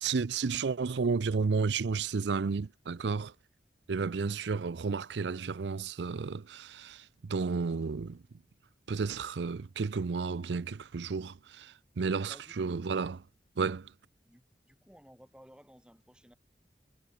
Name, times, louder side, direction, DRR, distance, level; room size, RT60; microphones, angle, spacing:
voice 1, 0.0-3.3 3.9-8.2 8.9-13.2 13.6-13.9, right 5 dB, 80° right, 0.5 m, -32 dB
voice 2, 12.2-12.9 14.3-16.3, equal, 5° right, 5.7 m, -57 dB
head